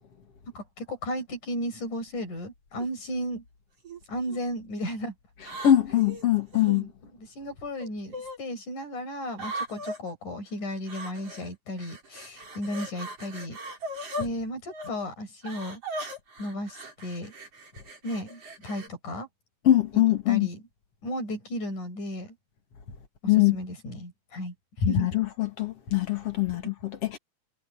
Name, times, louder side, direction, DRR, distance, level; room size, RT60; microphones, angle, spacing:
voice 1, 0.6-3.4 4.1-5.1 6.6-13.6 14.2-15.8 16.4-17.3 18.0-19.3 19.9-20.6 21.0-22.4 23.2-25.1 26.5-26.7, left 1 dB, 90° left, 8.6 m, -34 dB
sound 1, 2.8-3.1 3.8-4.4 5.4-6.8 7.8-8.4 9.3-10.0 10.9-11.5 11.8-14.3 14.7-14.9 15.4-18.9, right 1 dB, 50° right, 6.3 m, -39 dB
voice 2, 5.6-6.9 19.6-20.5 23.3-23.6 24.8-27.2, left 13 dB, 55° left, 2.9 m, -23 dB
omnidirectional pair, 3.4 m